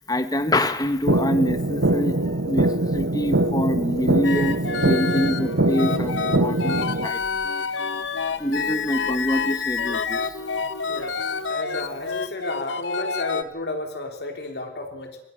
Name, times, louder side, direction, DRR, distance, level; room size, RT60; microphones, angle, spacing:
voice 1, 0.1-7.2 8.4-10.3, equal, 20° left, 10 dB, 1.5 m, -25 dB
sound 1, 1.1-7.1, right 2 dB, 90° right, 1.7 m, -23 dB
sound 2, 4.2-13.4, left 5 dB, 85° left, 1.6 m, -28 dB
voice 2, 11.5-15.2, left 2 dB, 55° left, 4 dB, 3.4 m, -32 dB
26.0 x 21.0 x 6.6 m, 0.92 s
head